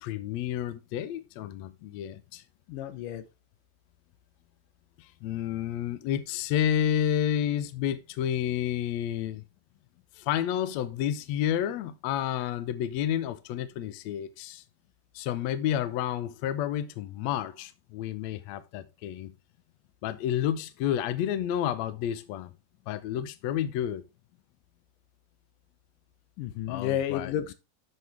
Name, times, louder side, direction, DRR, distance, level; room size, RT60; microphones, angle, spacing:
voice 1, 0.0-2.4 5.0-9.4 10.2-14.6 15.2-19.3 20.0-22.5 22.9-24.0 26.7-27.3, left 10 dB, 70° left, 1.8 m, -30 dB
voice 2, 2.7-3.2 26.4-27.5, left 10 dB, 90° left, 2.6 m, -31 dB
11.0 x 6.7 x 3.3 m
omnidirectional pair, 3.7 m